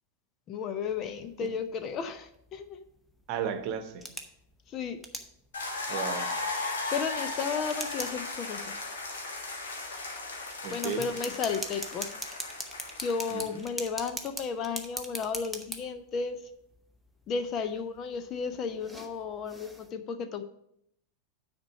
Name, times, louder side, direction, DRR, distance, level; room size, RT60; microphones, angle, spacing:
voice 1, 0.5-2.8 4.7-5.0 6.9-8.7 10.7-12.3 13.0-16.4 17.3-20.4, left 5 dB, 30° left, 10 dB, 0.7 m, -33 dB
sound 1, 0.9-19.9, equal, ahead, 0.9 m, -44 dB
voice 2, 3.3-4.1 5.9-6.3 10.6-11.0 13.3-13.6, right 8 dB, 45° right, 8 dB, 1.0 m, -34 dB
sound 2, 5.5-13.7, left 3 dB, 65° left, 1.6 m, -36 dB
9.5 x 4.4 x 5.7 m, 0.73 s
figure-of-eight pair, 90°, 0 cm